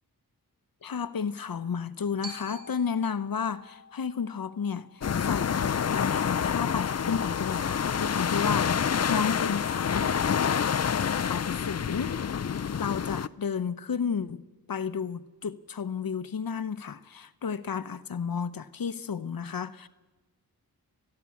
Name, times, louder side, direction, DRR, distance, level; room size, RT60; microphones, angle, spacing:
voice 1, 0.8-10.1 11.2-12.2 12.8-19.9, left 6 dB, 60° left, 0.9 m, -32 dB
Glockenspiel, 2.2-6.3, right 1 dB, 80° right, 2.9 m, -48 dB
sound 1, 5.0-13.3, left 7 dB, 40° left, 0.6 m, -27 dB
30.0 x 11.0 x 8.4 m
cardioid pair, 50°, 39 cm